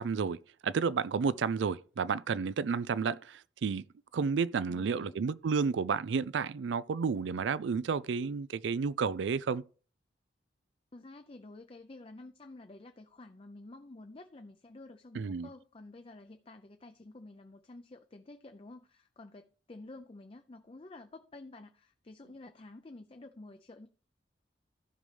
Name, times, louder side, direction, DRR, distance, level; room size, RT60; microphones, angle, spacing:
voice 1, 0.0-3.9 4.1-9.6 15.1-15.5, right 5 dB, 90° right, 0.4 m, -31 dB
voice 2, 4.7-5.2 10.9-23.9, left 2 dB, 30° left, 0.5 m, -50 dB
15.5 x 5.4 x 3.3 m
head